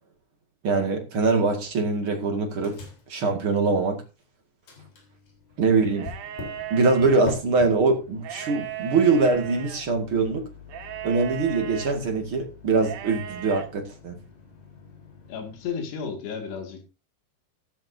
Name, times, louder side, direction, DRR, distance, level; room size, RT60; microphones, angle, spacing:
voice 1, 0.6-2.8 3.1-4.0 5.6-6.1 6.7-10.4 11.0-14.2, right 4 dB, 40° right, 2.2 m, -23 dB
Microwave oven, 1.2-1.7 2.0-4.2 4.6-15.7, left 4 dB, 55° left, 5.5 m, -44 dB
sound 1, 5.9-7.2 8.2-9.8 10.7-12.0 12.8-13.7, right 11 dB, 65° right, 1.9 m, -36 dB
voice 2, 15.3-16.8, left 6 dB, 85° left, 4.4 m, -33 dB
14.5 x 12.5 x 2.7 m
omnidirectional pair, 4.7 m